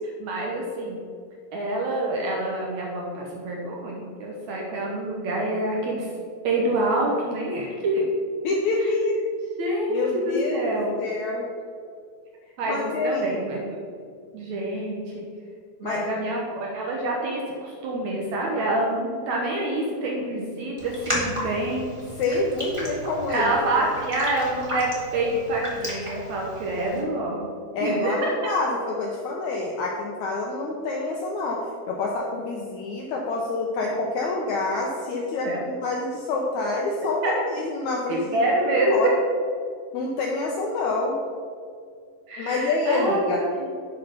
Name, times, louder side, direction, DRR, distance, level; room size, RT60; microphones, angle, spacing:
voice 1, 0.2-1.0 1.5-6.1 6.4-8.0 8.8-8.9 9.6-10.9 12.6-13.8 14.3-15.2 15.8-21.9 23.3-27.5 27.8-28.3 35.4-35.6 37.2-37.4 38.1-39.1 42.3-43.7, right 1 dB, 70° right, -1 dB, 1.9 m, -26 dB
voice 2, 8.4-9.2 9.9-10.6 11.0-11.4 12.7-13.3 15.8-16.0 22.2-23.5 27.7-38.4 38.9-39.1 39.9-41.1 42.4-43.4, left 3 dB, 75° left, -1 dB, 1.7 m, -27 dB
Raindrop, 20.8-27.0, equal, 35° right, 0.4 m, -34 dB
7.8 x 5.7 x 5.1 m, 2.2 s
omnidirectional pair, 4.1 m